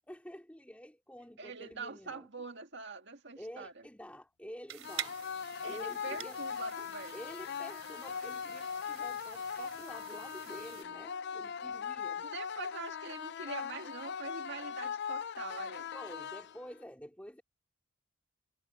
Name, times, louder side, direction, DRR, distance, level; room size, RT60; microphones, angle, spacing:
voice 1, 0.1-2.3 3.3-5.2 5.4-6.4 7.1-12.3 15.9-17.4, equal, 5° left, 2.9 m, -49 dB
voice 2, 1.4-3.8 5.6-7.2 12.2-15.9, right 4 dB, 50° right, 2.0 m, -44 dB
sound 1, 4.7-10.8, right 9 dB, 65° right, 3.4 m, -47 dB
sound 2, 4.8-16.8, left 7 dB, 50° left, 0.4 m, -40 dB
head